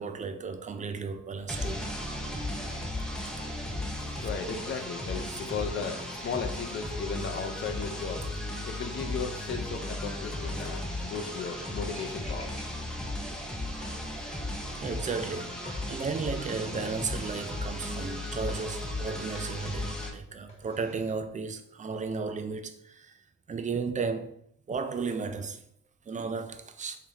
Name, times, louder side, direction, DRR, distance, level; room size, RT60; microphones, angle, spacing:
voice 1, 0.0-1.9 5.3-5.4 14.8-15.6 15.9-23.1 23.5-24.4 24.7-25.6 26.1-27.0, right 5 dB, 25° right, 0.4 m, -34 dB
sound 1, 1.5-20.1, left 1 dB, ahead, 0.7 m, -36 dB
voice 2, 4.2-8.3 8.6-12.5 16.7-16.9, left 5 dB, 40° left, 0.6 m, -36 dB
sound 2, 4.6-7.2 10.3-13.1 13.7-15.9 17.2-17.8 19.3-21.2, left 1 dB, 20° left, 1.4 m, -52 dB
3.3 x 2.8 x 3.5 m
cardioid pair, 90°, 30 cm